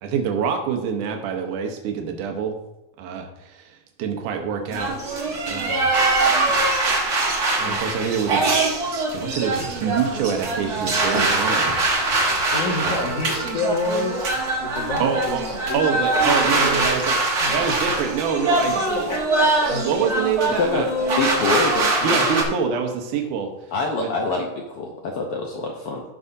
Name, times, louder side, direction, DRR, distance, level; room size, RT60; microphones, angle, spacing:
voice 1, 0.0-2.6 3.0-5.0 5.4-6.0 7.1-7.3 7.6-8.4 8.9-11.8 12.8-13.0 13.6-13.7 15.0-15.4 15.7-19.0 19.8-20.9 22.0-23.5 24.0-24.1, right 6 dB, 80° right, 4 dB, 2.5 m, -26 dB
sound 1, 4.7-22.4, right 2 dB, 55° right, 1.0 m, -22 dB
voice 2, 12.5-14.3 14.6-15.8 16.2-16.9 17.4-17.9 18.8-20.3, left 2 dB, 55° left, -1 dB, 2.3 m, -28 dB
voice 3, 20.5-20.9 21.2-22.2 23.7-26.0, left 3 dB, 85° left, 1 dB, 1.3 m, -25 dB
15.5 x 5.6 x 2.7 m, 0.97 s
omnidirectional pair, 3.7 m